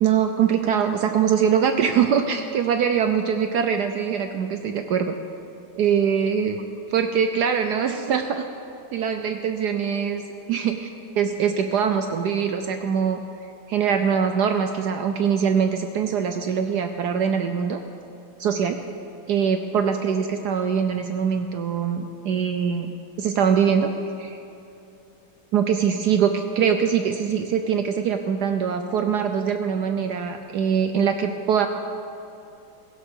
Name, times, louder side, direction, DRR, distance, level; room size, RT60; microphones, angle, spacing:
voice 1, 0.0-5.2 5.7-6.6 6.9-8.4 8.9-10.2 10.5-10.9 11.2-13.2 13.7-17.8 18.4-18.8 19.3-23.9 24.2-24.4 25.5-31.7, right 7 dB, 70° right, 6 dB, 1.0 m, -23 dB
16.5 x 15.5 x 3.7 m, 2.8 s
omnidirectional pair, 2.3 m